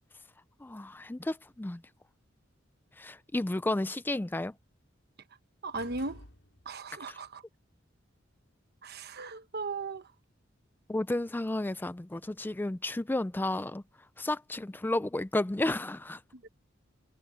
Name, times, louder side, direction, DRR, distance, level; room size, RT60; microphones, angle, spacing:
voice 1, 0.6-1.8 3.0-4.5 7.1-7.2 10.9-13.8 14.2-16.2, left 2 dB, 10° left, 0.4 m, -32 dB
voice 2, 5.6-6.2 6.6-7.4 8.8-10.0 16.3-16.5, right 3 dB, 55° right, 1.0 m, -37 dB
sound 1, 5.7-7.0, left 1 dB, 85° left, 5.4 m, -52 dB
head